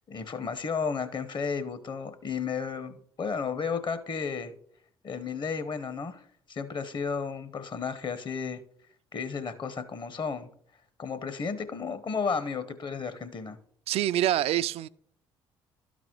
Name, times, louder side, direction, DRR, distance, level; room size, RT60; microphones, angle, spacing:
voice 1, 0.1-4.5 5.0-8.6 9.1-10.5 11.0-13.6, left 5 dB, 40° left, 1.0 m, -33 dB
voice 2, 13.9-14.9, right 12 dB, 60° right, 0.4 m, -26 dB
12.0 x 4.1 x 4.6 m
hypercardioid pair, 55°, 12 cm